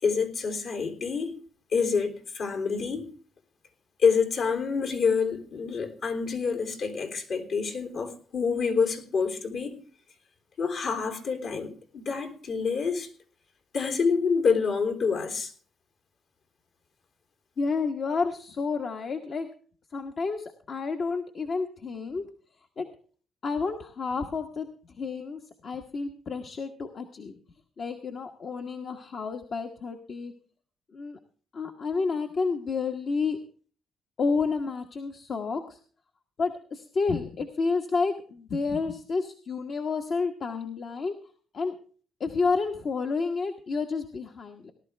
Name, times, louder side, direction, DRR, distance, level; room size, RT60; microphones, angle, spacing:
voice 1, 0.0-1.4 1.7-3.1 4.0-9.8 10.6-13.1 13.7-15.5, left 5 dB, 65° left, 3.4 m, -27 dB
voice 2, 17.6-19.5 19.9-22.3 22.8-22.9 23.4-27.3 27.8-30.3 30.9-31.2 31.5-33.4 34.2-35.8 36.4-41.1 41.5-41.7 42.2-44.7, left 4 dB, 50° left, 1.3 m, -30 dB
18.5 x 12.0 x 3.4 m
cardioid pair, 90°, 0 cm